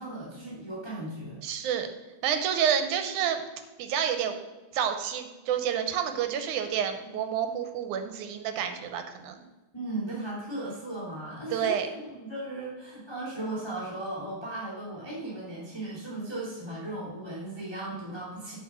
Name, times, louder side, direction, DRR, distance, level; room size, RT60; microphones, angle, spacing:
voice 1, 0.0-1.4 9.7-18.6, right 1 dB, 10° left, -7 dB, 2.7 m, -36 dB
voice 2, 1.4-1.9 2.2-3.4 3.8-4.4 4.7-9.4 11.5-11.9, right 8 dB, 75° right, 7 dB, 2.2 m, -29 dB
11.0 x 4.9 x 6.2 m, 1.2 s
omnidirectional pair, 3.6 m